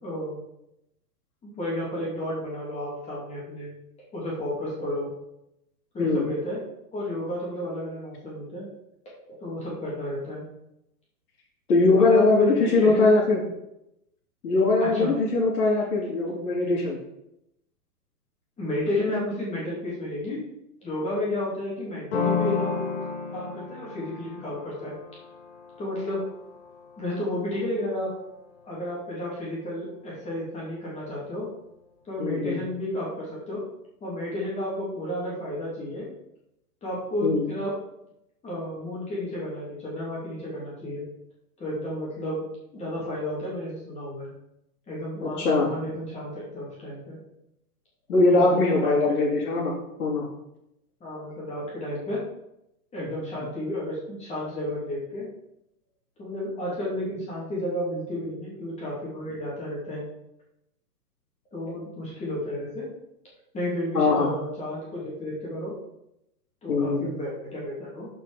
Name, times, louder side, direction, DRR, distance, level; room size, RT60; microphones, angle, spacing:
voice 1, 0.0-0.4 1.4-3.7 4.1-5.1 5.9-6.6 6.9-8.7 9.3-10.4 12.0-13.1 14.9-15.1 18.6-20.4 20.8-22.9 23.3-24.9 25.8-26.2 27.0-28.1 28.7-31.5 32.0-33.6 34.0-36.1 36.8-37.7 38.4-41.0 41.6-42.4 42.7-44.3 44.9-47.2 48.3-49.4 51.0-52.2 52.9-55.3 56.2-60.0 61.5-62.9 63.5-65.7 66.6-68.1, left 1 dB, 15° left, -6 dB, 2.8 m, -32 dB
voice 2, 11.7-13.4 14.4-17.0 32.2-32.6 37.2-37.4 45.2-45.7 48.1-49.7 50.0-50.2 63.9-64.3 66.7-67.0, left 3 dB, 70° left, -7 dB, 3.0 m, -21 dB
sound 1, 22.1-27.7, left 5 dB, 45° left, 2.1 m, -32 dB
8.2 x 5.5 x 5.1 m, 0.84 s
hypercardioid pair, 155°, 47 cm